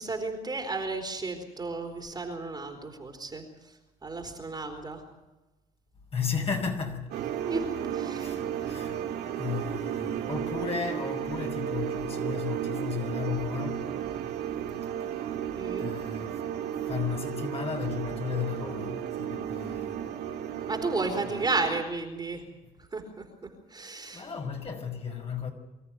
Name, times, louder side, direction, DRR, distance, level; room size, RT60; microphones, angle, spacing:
voice 1, 0.0-3.4 4.0-5.0 7.5-8.3 8.6-8.7 15.6-15.9 20.7-22.4 22.9-23.2 23.7-24.2, right 3 dB, 25° right, 4.2 m, -33 dB
voice 2, 6.1-7.2 8.2-14.0 15.2-15.4 15.8-16.5 16.8-20.1 21.3-21.4 23.8-25.5, left 6 dB, 35° left, 5.5 m, -34 dB
sound 1, 7.1-21.8, right 10 dB, 80° right, 2.4 m, -34 dB
25.5 x 14.0 x 9.4 m
cardioid pair, 110°, 17 cm